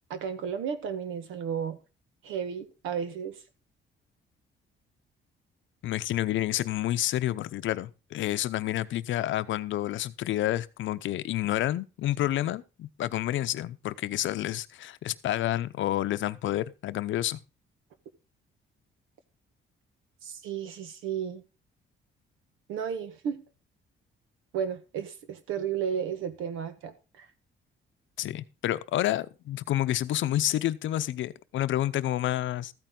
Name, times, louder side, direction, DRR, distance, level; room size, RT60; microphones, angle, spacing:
voice 1, 0.1-1.8 2.2-3.3 20.2-21.4 22.7-23.4 24.5-27.2, right 7 dB, 90° right, 1.5 m, -33 dB
voice 2, 5.8-17.4 28.2-32.7, left 13 dB, 75° left, 0.7 m, -29 dB
14.0 x 9.2 x 3.8 m
cardioid pair, 90°, 20 cm